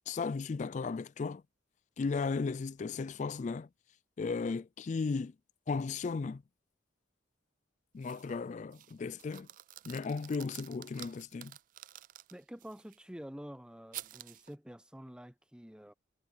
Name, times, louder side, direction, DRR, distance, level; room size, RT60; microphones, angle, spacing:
voice 1, 0.1-1.4 2.0-3.7 4.2-5.3 5.7-6.4 7.9-9.5 9.9-11.6, left 4 dB, 40° left, 0.3 m, -35 dB
sound 1, 8.0-8.4 8.7-13.0 13.9-14.5, right 14 dB, 45° right, 0.3 m, -50 dB
voice 2, 12.3-15.9, equal, 5° right, 0.8 m, -48 dB
head